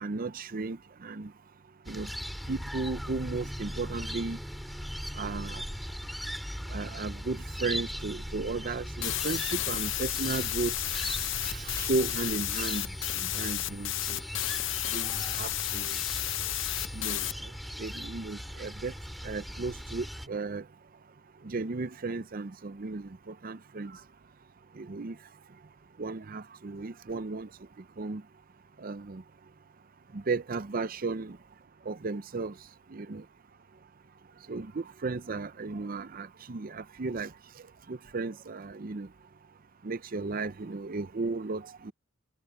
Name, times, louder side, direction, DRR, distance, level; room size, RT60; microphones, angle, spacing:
voice 1, 0.0-1.3 1.9-2.1 2.5-4.4 5.2-5.6 6.7-12.9 13.1-14.2 14.9-15.9 16.9-17.3 17.8-18.9 19.2-20.6 21.4-23.1 23.4-24.0 24.8-25.2 26.0-27.5 28.0-28.2 28.8-29.2 30.1-31.4 31.9-32.5 32.9-33.2 34.5-37.3 37.9-39.1 39.8-41.9, right 3 dB, 45° right, 0.6 m, -35 dB
sound 1, 1.8-20.3, equal, ahead, 5.6 m, -39 dB
sound 2, 9.0-17.3, left 14 dB, 65° left, 0.7 m, -32 dB
head